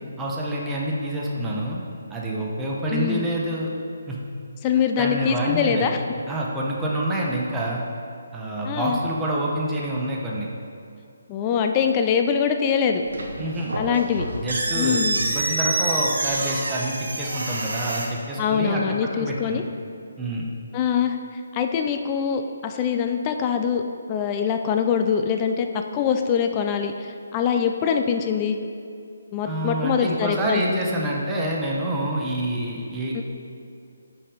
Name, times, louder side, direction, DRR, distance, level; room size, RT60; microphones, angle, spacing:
voice 1, 0.2-1.8 2.1-3.7 4.1-4.2 5.0-5.9 6.3-7.8 8.3-10.5 13.4-13.7 14.4-19.6 20.2-20.5 29.4-33.2, right 1 dB, 10° right, -4 dB, 0.8 m, -27 dB
voice 2, 2.9-3.2 4.6-6.0 8.7-9.0 11.3-13.0 13.8-14.3 14.8-15.2 18.4-19.6 20.7-21.2 21.5-23.8 24.1-28.6 29.3-31.1 33.1-33.2, left 7 dB, 25° left, 5 dB, 0.3 m, -23 dB
sound 1, 13.0-18.1, right 2 dB, 70° right, 1.1 m, -27 dB
5.5 x 5.3 x 4.9 m, 2.5 s
figure-of-eight pair, 155°, 0 cm